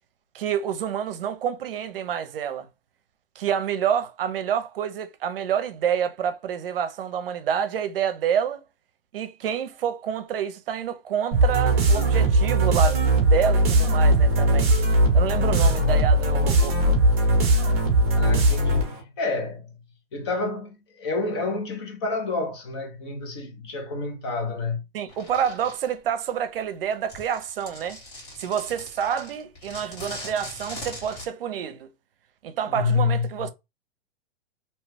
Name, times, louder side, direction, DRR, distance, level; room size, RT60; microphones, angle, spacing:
voice 1, 0.3-2.7 3.4-8.6 9.1-14.7 15.1-17.0 24.9-28.0 28.4-31.9 32.4-33.5, right 8 dB, 65° right, 0.7 m, -28 dB
sound 1, 11.3-19.0, right 1 dB, 25° right, 0.8 m, -19 dB
voice 2, 15.5-16.0 18.1-19.7 20.1-24.8 32.7-33.5, left 3 dB, 25° left, 0.6 m, -28 dB
sound 2, 25.1-25.9 26.9-31.3, left 1 dB, 40° left, 1.7 m, -40 dB
2.8 x 2.2 x 3.2 m
hypercardioid pair, 170°, 30 cm